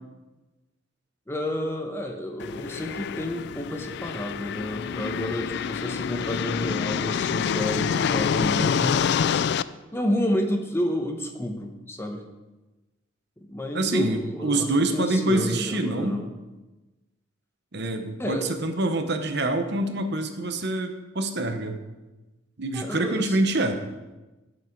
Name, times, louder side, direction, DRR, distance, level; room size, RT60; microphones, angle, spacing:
voice 1, 1.3-9.4 9.9-12.2 13.4-14.7 14.9-16.3 18.2-18.5 22.7-23.4, equal, 10° left, 4 dB, 0.9 m, -30 dB
sound 1, 2.4-9.6, left 7 dB, 55° left, 0.3 m, -27 dB
voice 2, 13.7-16.2 17.7-21.8 22.6-23.8, right 2 dB, 55° right, 7 dB, 0.9 m, -26 dB
14.5 x 6.4 x 4.6 m, 1.1 s
head